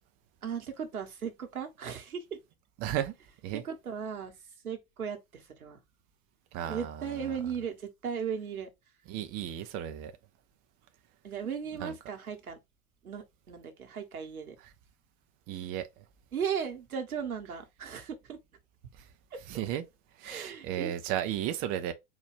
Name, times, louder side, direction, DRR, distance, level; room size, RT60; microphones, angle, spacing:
voice 1, 0.4-2.4 3.5-4.3 4.6-5.8 6.7-8.7 11.2-12.6 13.0-14.6 16.3-18.4 20.2-20.9, right 7 dB, 80° right, 1.1 m, -36 dB
voice 2, 2.8-3.1 3.4-3.6 6.5-7.3 9.1-10.1 11.8-11.9 15.5-15.9 19.5-19.8 20.2-21.9, right 11 dB, 25° right, 0.3 m, -34 dB
4.1 x 2.3 x 3.4 m
figure-of-eight pair, 80°, 43 cm